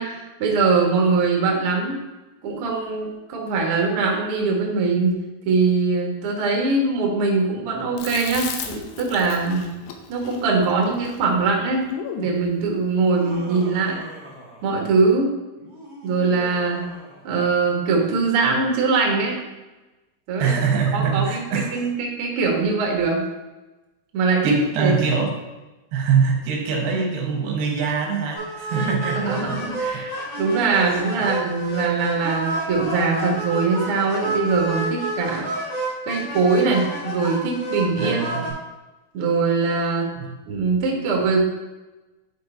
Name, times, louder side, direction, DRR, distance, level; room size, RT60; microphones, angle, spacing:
voice 1, 0.0-2.0 2.4-5.2 5.4-9.6 10.1-11.9 12.2-14.0 14.6-15.3 16.0-16.8 17.2-19.4 20.3-20.5 20.9-21.4 21.7-23.2 24.1-25.0 28.7-28.9 29.2-30.1 30.4-35.5 36.0-38.2 39.1-40.1 40.5-41.4, right 4 dB, 65° right, 0 dB, 1.3 m, -22 dB
Chewing mastication, 8.0-12.4, left 6 dB, 75° left, 2.3 m, -35 dB
Laughter, 12.9-15.1 15.6-17.9, equal, 45° right, 1.2 m, -42 dB
voice 2, 20.4-21.9 24.4-25.3 25.9-29.6 29.9-30.0 31.2-31.3 38.0-38.5 40.2-40.4, right 6 dB, 90° right, 2 dB, 3.2 m, -23 dB
sound 1, 28.3-38.5, right 1 dB, 45° left, 3.5 m, -29 dB
9.4 x 4.2 x 4.3 m, 1.1 s
omnidirectional pair, 4.5 m